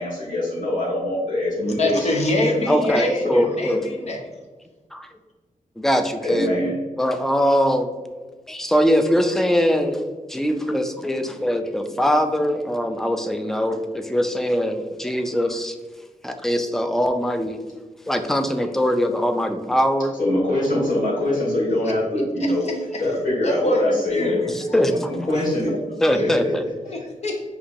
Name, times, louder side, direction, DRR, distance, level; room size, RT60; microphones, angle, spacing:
voice 1, 0.0-2.1 2.4-3.0 3.2-3.5 6.2-6.7 20.2-22.7 23.0-24.5 24.9-25.7 26.2-26.5 26.8-26.9, left 1 dB, 70° left, -6 dB, 1.5 m, -24 dB
voice 2, 1.6-4.2 21.8-21.9 22.4-22.7 23.4-24.4 24.7-24.9 25.3-25.5 26.1-26.4 26.9-27.4, left 1 dB, 50° left, 1 dB, 0.7 m, -25 dB
voice 3, 2.7-3.8 4.9-5.1 5.8-6.7 7.0-7.9 8.5-10.0 10.3-15.7 16.2-17.6 18.1-20.1 24.6-25.3 26.0-26.6, equal, 5° left, 7 dB, 0.3 m, -22 dB
5.4 x 2.9 x 2.5 m, 1.3 s
wide cardioid pair, 130°, 14 cm